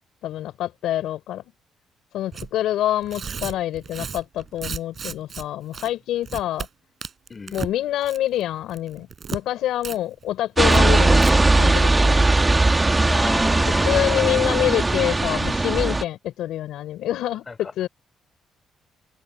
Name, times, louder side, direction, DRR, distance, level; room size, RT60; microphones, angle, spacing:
voice 1, 0.2-1.4 2.1-6.7 7.5-12.2 13.8-17.9, left 13 dB, 85° left, 4.8 m, -26 dB
Tearing, 2.3-2.5 3.0-5.4 5.7-5.9 6.2-6.7 7.0-7.7 8.0-8.4 8.7-9.4 9.8-10.0 10.2-10.3 10.7-10.8 11.1-11.3, right 6 dB, 45° right, 4.5 m, -33 dB
voice 2, 7.3-7.6 12.7-14.2 17.5-17.7, left 4 dB, 30° left, 3.8 m, -33 dB
sound 1, 10.6-16.0, right 2 dB, 20° right, 1.8 m, -18 dB
cardioid pair, 90°, 0 cm